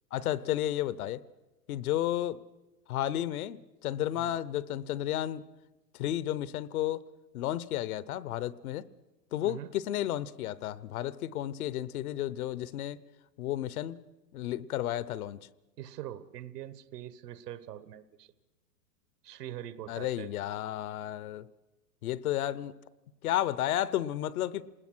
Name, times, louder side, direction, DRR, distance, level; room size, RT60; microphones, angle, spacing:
voice 1, 0.1-1.2 1.7-2.4 2.9-5.4 5.9-7.0 7.3-8.9 9.3-13.0 13.4-14.0 14.3-15.4 19.9-21.5 22.0-22.7 23.2-24.6, left 13 dB, 65° left, 19 dB, 0.9 m, -32 dB
voice 2, 15.8-18.3 19.2-20.3, right 12 dB, 75° right, 15 dB, 1.4 m, -43 dB
27.5 x 20.0 x 6.2 m, 1.1 s
hypercardioid pair, 135°, 48 cm